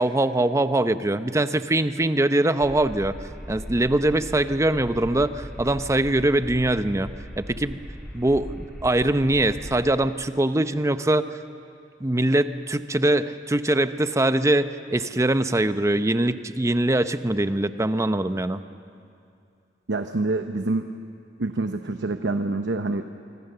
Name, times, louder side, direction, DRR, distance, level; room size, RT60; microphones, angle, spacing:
voice 1, 0.0-3.1 3.5-7.1 7.4-7.8 8.1-11.4 12.0-18.6, right 1 dB, 15° right, 11 dB, 0.7 m, -22 dB
sound 1, 2.6-9.9, equal, 5° left, 3.2 m, -39 dB
voice 2, 19.9-20.9 21.4-23.0, right 2 dB, 80° right, 7 dB, 0.9 m, -26 dB
26.0 x 24.5 x 6.8 m, 2.5 s
head